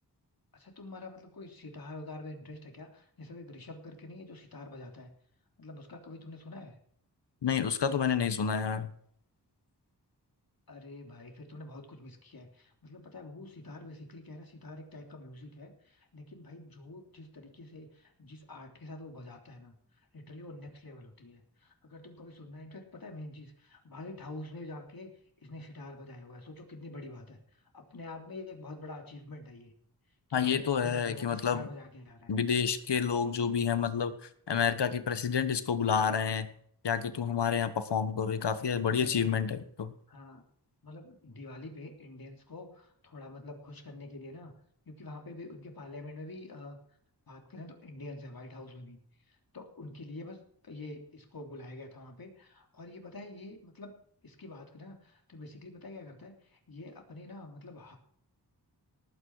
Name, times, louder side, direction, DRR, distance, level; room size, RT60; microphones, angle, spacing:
voice 1, 0.5-5.1 5.6-6.7 10.7-19.7 20.1-25.1 25.4-29.7 30.3-32.4 38.7-39.4 40.1-40.4 40.8-44.5 44.8-46.8 47.3-49.0 49.3-53.9 54.2-58.0, left 2 dB, 60° left, 2 dB, 3.3 m, -46 dB
voice 2, 7.4-8.9 30.3-31.7 32.3-36.5 36.8-39.9, left 7 dB, 90° left, 11 dB, 1.3 m, -29 dB
18.5 x 8.9 x 4.8 m, 0.66 s
wide cardioid pair, 85°, 40 cm